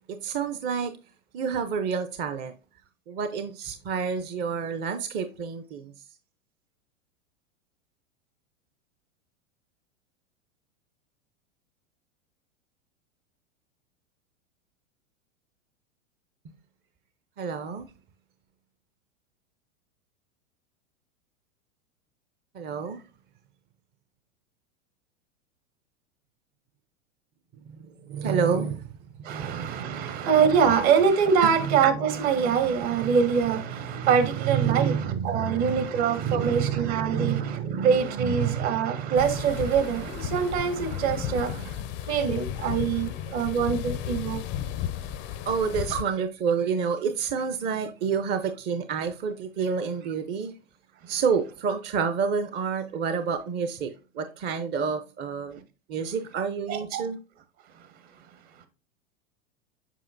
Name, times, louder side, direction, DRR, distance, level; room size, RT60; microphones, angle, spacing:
voice 1, 0.1-0.9 1.3-2.5 3.1-5.9 17.4-17.9 22.5-23.0 27.7-28.9 29.2-30.3 31.4-31.8 32.4-32.6 33.0-33.2 33.8-39.6 45.5-50.5 51.1-55.6 55.9-57.2, right 6 dB, 25° right, 0.5 m, -29 dB
voice 2, 29.2-44.4 45.9-46.0 56.7-57.1, right 6 dB, 55° right, 1.6 m, -24 dB
sound 1, 39.2-46.0, left 11 dB, 30° left, 0.4 m, -34 dB
7.4 x 5.2 x 2.5 m
hypercardioid pair, 100°, 39 cm